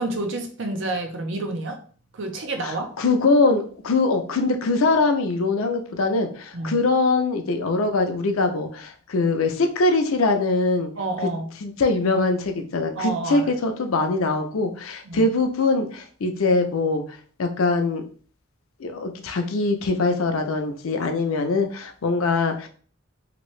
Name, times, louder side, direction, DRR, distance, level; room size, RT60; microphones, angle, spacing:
voice 1, 0.0-1.8 2.1-2.9 6.5-6.8 11.0-11.5 13.0-13.5 15.1-15.3, right 2 dB, 60° right, 4 dB, 0.6 m, -29 dB
voice 2, 2.6-10.9 11.6-17.0 17.4-18.0 18.8-22.7, left 3 dB, 85° left, 6 dB, 0.5 m, -22 dB
2.9 x 2.6 x 3.1 m, 0.43 s
head